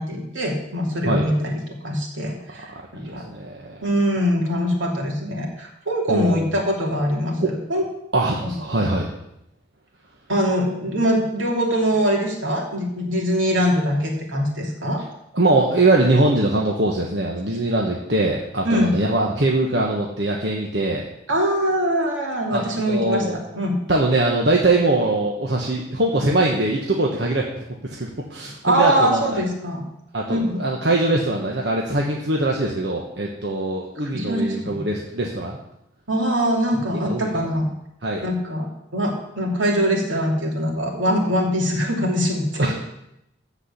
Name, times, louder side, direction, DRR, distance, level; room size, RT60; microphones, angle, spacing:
voice 1, 0.0-3.2 3.8-7.8 8.4-8.8 10.3-15.0 18.6-19.0 21.3-23.2 23.5-23.7 28.6-29.8 30.3-30.7 34.0-34.8 36.1-37.7 38.2-38.7 38.9-42.7, equal, 80° right, 0 dB, 2.9 m, -23 dB
voice 2, 2.7-3.9 6.1-6.4 7.4-7.5 8.1-9.1 15.3-21.0 22.5-22.6 22.9-23.4 23.9-27.5 27.8-29.2 30.1-35.6 37.0-37.3 38.0-38.2 42.6-42.7, right 2 dB, 60° right, -1 dB, 1.3 m, -22 dB
14.0 x 4.9 x 8.4 m, 0.83 s
head